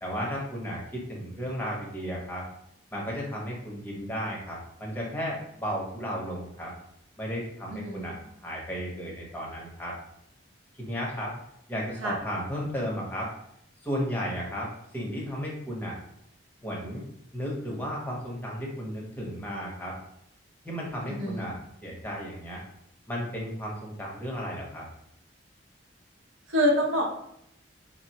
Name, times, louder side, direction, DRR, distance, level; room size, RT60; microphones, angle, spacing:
voice 1, 0.0-2.5 2.9-6.7 7.2-8.2 8.4-9.9 10.8-11.3 11.7-13.3 13.8-16.0 16.6-17.0 17.3-20.0 20.6-22.6 23.1-24.8, equal, 10° left, -3 dB, 0.7 m, -34 dB
voice 2, 7.7-8.1 12.0-12.2 21.1-21.5 26.5-27.0, equal, 85° right, -1 dB, 0.8 m, -26 dB
3.9 x 2.0 x 2.7 m, 0.73 s
head